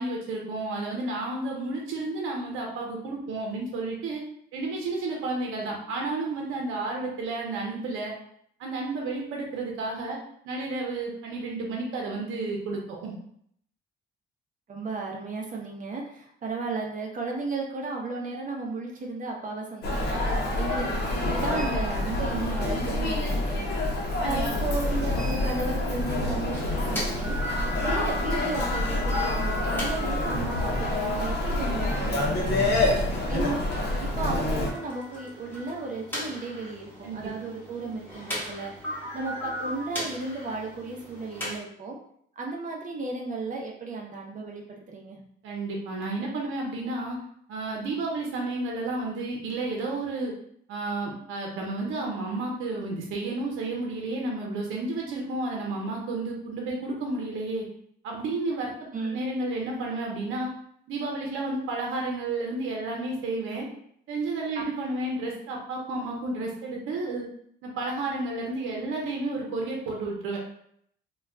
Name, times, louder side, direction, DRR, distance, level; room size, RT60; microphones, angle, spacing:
voice 1, 0.0-4.2 4.5-8.1 8.6-10.2 10.4-13.2 37.0-37.3 45.4-47.2 47.5-50.3 50.7-57.6 58.0-58.7 59.1-60.5 60.9-63.7 64.1-67.2 67.6-70.4, right 2 dB, 85° right, -1 dB, 0.6 m, -31 dB
voice 2, 14.7-27.4 27.8-32.6 32.9-33.6 34.0-38.7 39.1-42.0 42.4-44.6 44.9-45.2 58.9-59.2 64.6-64.7, right 3 dB, 40° right, -1 dB, 0.6 m, -34 dB
Human voice, 19.8-34.7, left 2 dB, 55° left, 0.8 m, -27 dB
sound 1, 26.5-41.6, left 1 dB, 10° left, 1.1 m, -37 dB
2.3 x 2.1 x 3.6 m, 0.68 s
cardioid pair, 90°, 20 cm